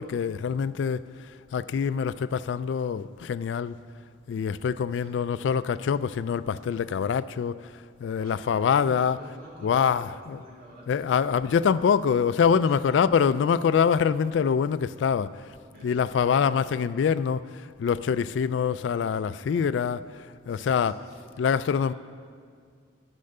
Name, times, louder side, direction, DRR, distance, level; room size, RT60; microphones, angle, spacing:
voice 1, 0.0-3.8 4.3-7.7 8.0-9.2 9.6-10.4 10.9-15.5 15.8-20.1 20.5-21.1 21.4-21.9, left 7 dB, 85° left, 0.3 m, -25 dB
voice 2, 4.9-5.3 8.2-11.5 12.6-13.0 15.7-16.6 20.5-21.3 21.8-21.9, right 1 dB, 55° right, 2.8 m, -48 dB
10.0 x 9.7 x 6.6 m
head